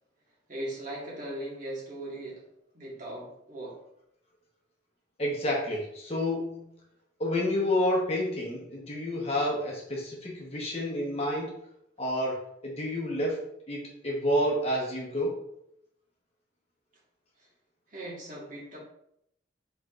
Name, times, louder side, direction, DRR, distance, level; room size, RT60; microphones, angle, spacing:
voice 1, 0.5-2.4 2.7-3.8 17.4-17.5 17.9-18.8, right 1 dB, 45° right, -5 dB, 1.5 m, -39 dB
voice 2, 5.2-6.6 7.2-11.5 12.0-13.4 13.7-15.3, left 1 dB, 35° left, -3 dB, 0.9 m, -29 dB
4.7 x 4.4 x 2.4 m, 0.76 s
head